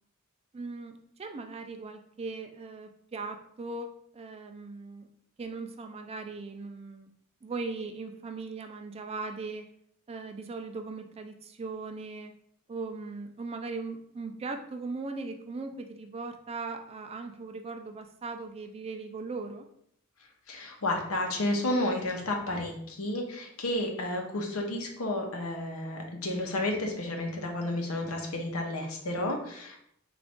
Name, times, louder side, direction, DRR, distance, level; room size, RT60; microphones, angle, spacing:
voice 1, 0.5-5.1 5.4-7.1 7.4-9.6 10.1-12.3 12.7-19.7, right 3 dB, 30° right, 6 dB, 0.4 m, -39 dB
voice 2, 20.5-29.8, left 1 dB, 90° left, 2 dB, 0.8 m, -31 dB
3.8 x 2.5 x 3.5 m, 0.69 s
head